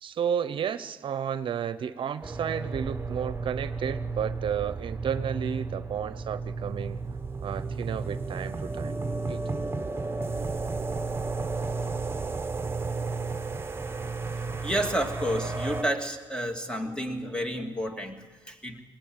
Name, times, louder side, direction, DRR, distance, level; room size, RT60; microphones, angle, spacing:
voice 1, 0.0-7.0 7.4-9.0 9.3-9.4, right 8 dB, 65° right, 12 dB, 0.8 m, -32 dB
sound 1, 2.2-15.8, right 3 dB, 25° right, 1.2 m, -33 dB
voice 2, 14.6-18.8, equal, 10° left, 4 dB, 2.7 m, -30 dB
20.5 x 17.5 x 8.9 m, 1.4 s
cardioid pair, 70°, 9 cm